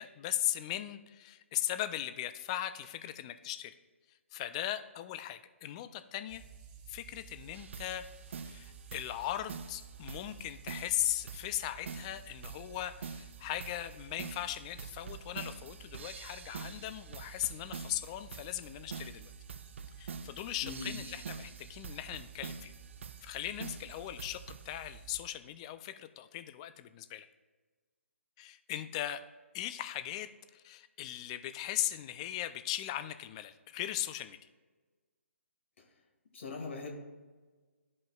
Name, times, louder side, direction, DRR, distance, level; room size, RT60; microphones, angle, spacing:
voice 1, 0.0-3.7 4.3-6.4 6.9-8.0 8.4-19.3 20.0-22.7 23.2-27.3 28.4-29.2 29.5-34.4, left 13 dB, 25° left, 11 dB, 0.4 m, -38 dB
sound 1, 6.3-25.2, right 6 dB, 30° right, 0.8 m, -53 dB
sound 2, 7.5-24.7, right 5 dB, 60° right, 0.5 m, -46 dB
voice 2, 20.6-20.9 36.3-36.9, left 3 dB, 60° left, 2 dB, 1.8 m, -40 dB
13.0 x 5.3 x 2.3 m, 1.4 s
figure-of-eight pair, 145°, 7 cm